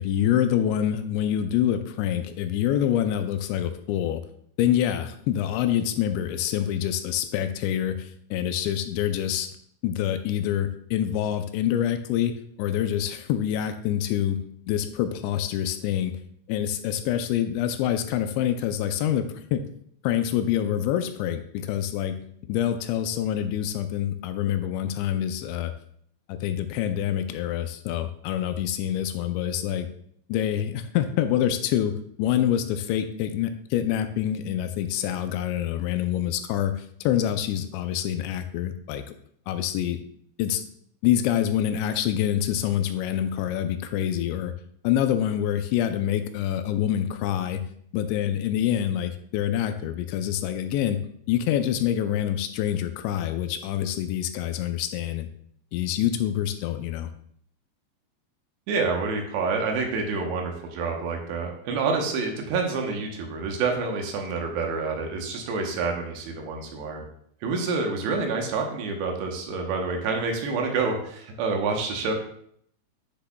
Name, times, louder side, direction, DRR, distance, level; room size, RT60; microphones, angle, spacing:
voice 1, 0.0-4.2 4.6-9.5 9.8-14.4 14.7-16.2 16.5-19.6 20.0-22.2 22.5-25.7 26.3-29.9 30.3-31.9 32.2-39.0 39.5-40.0 40.4-40.6 41.0-44.5 44.8-47.6 47.9-51.0 51.3-55.3 55.7-57.1, left 10 dB, 85° left, 8 dB, 2.7 m, -26 dB
voice 2, 58.7-67.0 67.4-72.1, right 4 dB, 75° right, 2 dB, 3.0 m, -28 dB
10.0 x 6.6 x 2.2 m, 0.66 s
omnidirectional pair, 5.2 m